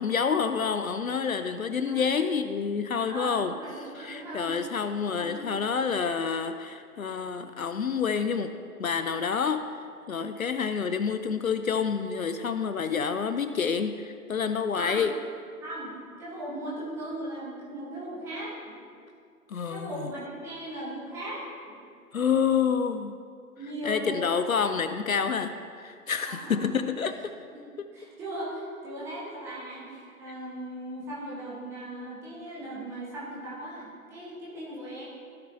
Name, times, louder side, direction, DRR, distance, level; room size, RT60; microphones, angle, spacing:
voice 1, 0.0-3.5 4.0-8.5 8.8-9.8 10.1-15.1 19.5-20.1 22.1-23.2 23.8-27.2, left 6 dB, 65° left, 10 dB, 0.6 m, -28 dB
voice 2, 3.1-4.5 5.2-5.4 14.7-15.0 15.6-18.7 19.7-21.4 23.6-24.3 26.2-26.7 27.5-35.0, right 1 dB, 5° right, -7 dB, 1.1 m, -38 dB
15.5 x 6.2 x 2.7 m, 2.3 s
figure-of-eight pair, 145°, 46 cm